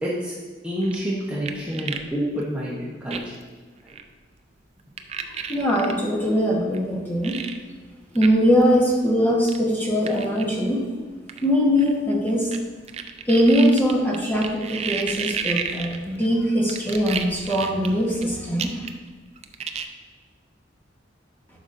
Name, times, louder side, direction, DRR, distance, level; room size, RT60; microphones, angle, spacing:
voice 1, 0.0-0.3 0.6-3.2 3.8-4.0, equal, 5° right, -7 dB, 0.9 m, -28 dB
sound 1, 0.8-2.1 2.4-2.5 3.1-3.4 3.9-4.0 5.0-5.9 6.7-6.8 7.2-7.6 8.1-8.3 8.6-8.7 9.4-9.6 10.1-10.4 11.3-12.6 12.9-16.3 16.7-18.2 18.6-19.1 19.4-19.8, right 7 dB, 35° right, 0.4 m, -31 dB
voice 2, 5.5-7.4 8.1-10.8 11.4-12.5 13.3-18.7, equal, 10° left, -4 dB, 1.2 m, -21 dB
11.5 x 5.1 x 2.6 m, 1.4 s
head